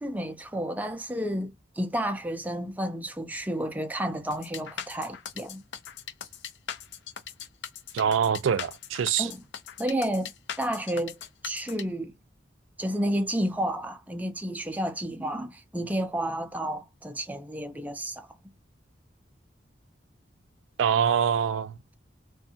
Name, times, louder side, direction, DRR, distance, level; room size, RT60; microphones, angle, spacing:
voice 1, 0.0-5.6 9.2-9.4 9.8-11.2 11.4-12.2 12.8-18.3, right 1 dB, 10° right, 0.3 m, -31 dB
sound 1, 4.3-11.8, left 8 dB, 65° left, 0.5 m, -39 dB
voice 2, 7.9-9.3 20.8-21.9, right 8 dB, 90° right, 0.3 m, -25 dB
2.5 x 2.2 x 2.7 m
head